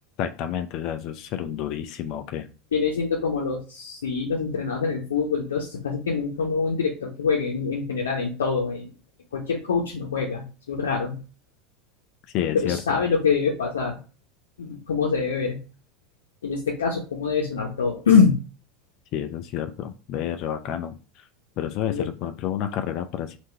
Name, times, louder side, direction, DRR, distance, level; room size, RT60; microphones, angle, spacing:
voice 1, 0.2-2.5 12.3-13.0 19.1-21.3 21.6-23.4, left 10 dB, 50° left, 7 dB, 0.4 m, -30 dB
voice 2, 2.7-8.9 9.3-11.2 12.5-14.0 14.6-15.6 16.4-18.3 21.9-22.1, left 5 dB, 75° left, -1 dB, 0.8 m, -24 dB
3.6 x 2.6 x 4.2 m, 0.34 s
figure-of-eight pair, 80°, 0 cm